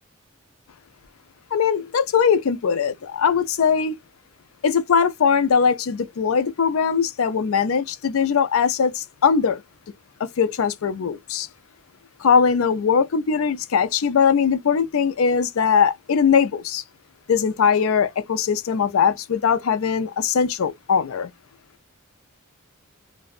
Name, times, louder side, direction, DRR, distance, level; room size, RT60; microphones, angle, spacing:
voice 1, 1.5-3.9 4.6-9.6 10.4-11.5 12.2-16.8 17.3-21.3, left 6 dB, 70° left, 0.4 m, -20 dB
2.5 x 2.1 x 2.3 m
head